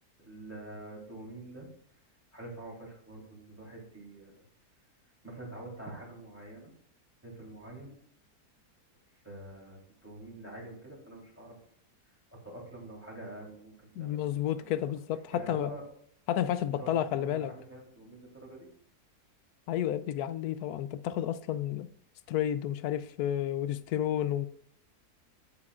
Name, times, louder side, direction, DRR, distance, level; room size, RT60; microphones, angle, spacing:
voice 1, 0.2-1.7 2.3-4.4 5.2-6.7 7.2-8.0 9.1-11.6 12.3-14.7 15.3-15.8 16.7-18.7, right 1 dB, 10° right, 3.2 m, -46 dB
voice 2, 14.0-15.7 16.3-17.5 19.7-21.9 22.3-24.5, left 11 dB, 75° left, 1.0 m, -31 dB
8.7 x 8.4 x 2.4 m
omnidirectional pair, 1.7 m